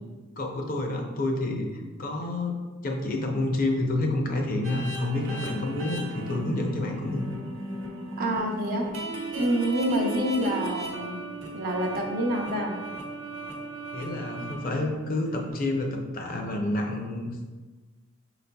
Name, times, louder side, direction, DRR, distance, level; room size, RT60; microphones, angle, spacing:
voice 1, 0.4-7.3 13.9-17.5, left 2 dB, 40° left, 2 dB, 0.6 m, -29 dB
sound 1, 4.6-15.5, right 1 dB, 60° right, 1.0 m, -36 dB
voice 2, 8.2-8.8 9.3-11.1 11.5-12.8, equal, 45° right, 1 dB, 0.6 m, -27 dB
5.7 x 4.0 x 2.3 m, 1.3 s
head